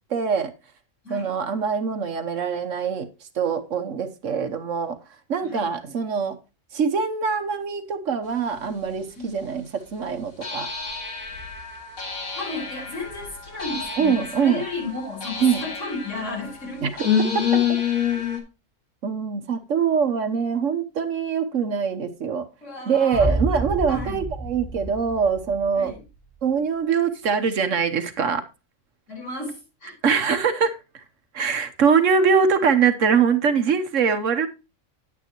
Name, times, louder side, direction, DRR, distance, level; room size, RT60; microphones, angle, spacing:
voice 1, 0.1-0.5 1.1-3.1 3.3-5.0 5.3-6.4 6.7-10.7 14.0-14.6 15.4-15.6 16.8-16.9 17.3-17.8 19.0-22.5 22.9-25.9 26.4-28.4 30.0-31.0 31.3-34.5, right 6 dB, 70° right, 1.3 m, -23 dB
sound 1, 8.8-8.9 10.4-18.4, left 7 dB, 85° left, 2.4 m, -28 dB
voice 2, 12.3-16.8 22.6-23.3 23.9-24.2 25.7-26.0 29.1-29.9, left 3 dB, 60° left, 4.7 m, -33 dB
sound 2, 23.1-26.1, right 1 dB, 25° left, 4.5 m, -29 dB
10.0 x 9.5 x 3.0 m
omnidirectional pair, 1.4 m